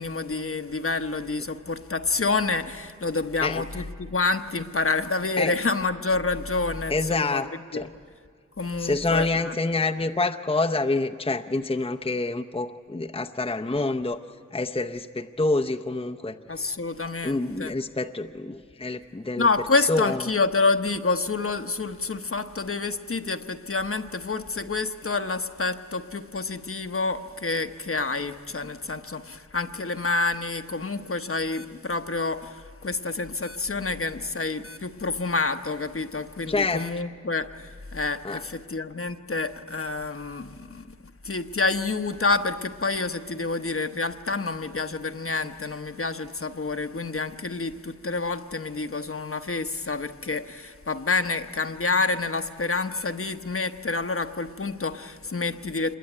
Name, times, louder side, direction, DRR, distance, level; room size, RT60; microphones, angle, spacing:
voice 1, 0.0-7.4 7.7-7.9 8.6-9.5 16.5-17.7 19.4-40.9 41.2-56.0, left 3 dB, 45° left, 8 dB, 1.0 m, -28 dB
voice 2, 6.9-7.9 8.8-14.2 14.5-16.4 17.2-19.5 19.9-20.2 36.5-36.9 38.2-38.4, left 2 dB, 20° left, 3 dB, 0.7 m, -27 dB
26.5 x 22.0 x 9.6 m, 2.1 s
wide cardioid pair, 70°, 30 cm